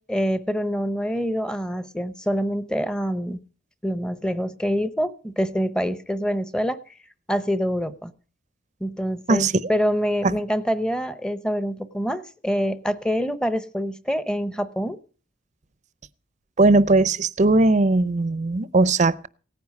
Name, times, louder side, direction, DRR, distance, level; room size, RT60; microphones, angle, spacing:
voice 1, 0.0-3.4 3.8-6.8 7.3-8.1 8.8-15.0, equal, 5° left, 0.8 m, -26 dB
voice 2, 16.6-19.3, right 2 dB, 35° right, 0.6 m, -19 dB
17.0 x 9.7 x 5.3 m
head